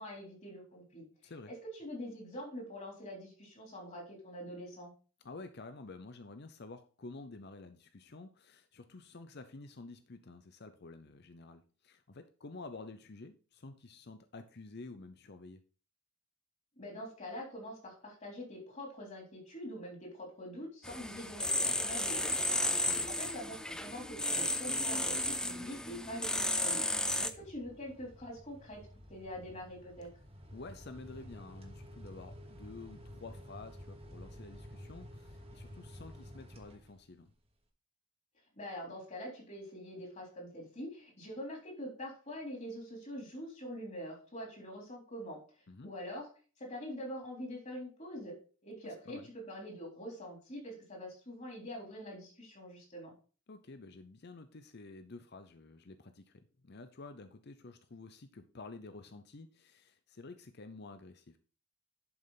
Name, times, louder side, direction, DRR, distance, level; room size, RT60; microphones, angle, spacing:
voice 1, 0.0-4.9 16.8-30.1 38.6-45.4 45.8-46.3 46.6-48.4 48.6-53.1, equal, 35° left, -1 dB, 3.7 m, -45 dB
voice 2, 5.2-15.6 22.7-23.1 27.2-27.4 30.5-37.3 45.7-45.9 48.8-49.3 53.5-61.4, left 3 dB, 50° left, 9 dB, 0.7 m, -50 dB
sound 1, 20.8-27.3, left 1 dB, 5° left, 0.3 m, -33 dB
sound 2, 22.3-22.6 23.0-37.3, equal, 30° right, 1.5 m, -53 dB
11.0 x 5.4 x 4.1 m, 0.38 s
head